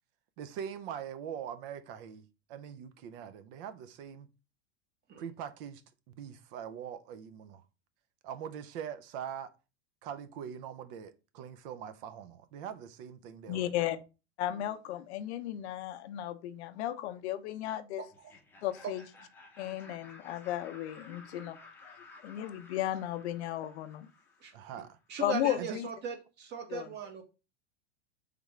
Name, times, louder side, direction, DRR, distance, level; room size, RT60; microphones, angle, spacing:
voice 1, 0.4-4.3 5.2-5.8 6.1-7.6 8.2-9.5 10.0-14.0 24.5-25.0 25.6-25.8, right 8 dB, 55° right, 0.5 m, -42 dB
voice 2, 13.5-14.0 14.4-18.0 18.6-19.0 19.6-21.6 21.8-22.0 22.2-24.1 25.2-25.9 26.7-26.9, left 13 dB, 75° left, 0.6 m, -34 dB
voice 3, 18.0-18.3 18.8-18.9 24.4-24.5 25.1-27.2, right 6 dB, 30° right, 0.9 m, -38 dB
Laughter, 18.1-24.9, left 3 dB, 5° left, 0.6 m, -55 dB
3.7 x 3.3 x 3.1 m
supercardioid pair, 135°, 33 cm